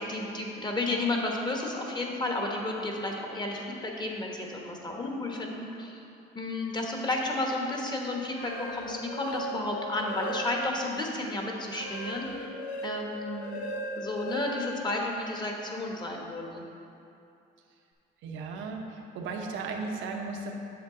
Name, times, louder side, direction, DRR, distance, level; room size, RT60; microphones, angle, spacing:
voice 1, 0.0-6.0 6.3-12.5 12.8-13.6 14.0-16.6, left 2 dB, 20° left, 0 dB, 1.2 m, -32 dB
sound 1, 8.2-10.9 11.3-15.6, equal, 90° left, 0.8 m, -38 dB
voice 2, 18.2-20.5, right 4 dB, 70° right, 2 dB, 1.0 m, -36 dB
8.0 x 6.5 x 3.8 m, 2.7 s
cardioid pair, 100°, 21 cm